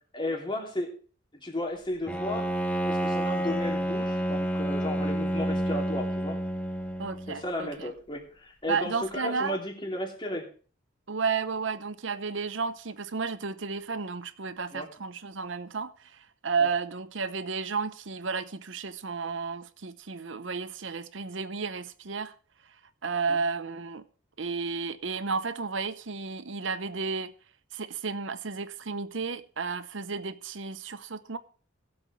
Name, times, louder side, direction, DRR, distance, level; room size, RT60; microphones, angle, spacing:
voice 1, 0.1-0.9 1.4-2.5 2.8-6.4 7.3-10.5 14.7-14.9 23.3-23.4, left 1 dB, 25° left, 2.9 m, -34 dB
Bowed string instrument, 2.1-7.4, right 1 dB, 5° left, 1.2 m, -29 dB
voice 2, 7.0-7.9 8.7-9.6 11.1-15.9 16.4-22.3 23.0-24.0 24.4-27.3 27.7-31.4, right 5 dB, 75° right, 0.9 m, -32 dB
20.0 x 8.0 x 3.2 m
head